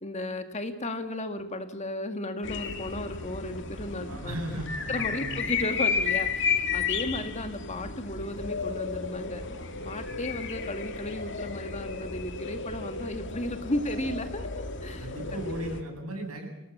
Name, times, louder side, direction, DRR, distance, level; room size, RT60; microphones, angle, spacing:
voice 1, 0.0-4.4 4.9-9.4 9.8-15.6, left 1 dB, 30° left, 7 dB, 1.9 m, -34 dB
sound 1, 2.4-15.8, left 5 dB, 55° left, 2.3 m, -33 dB
voice 2, 4.1-5.5 15.0-16.5, right 1 dB, 85° right, 3 dB, 7.8 m, -36 dB
26.0 x 19.0 x 7.3 m, 1.0 s
head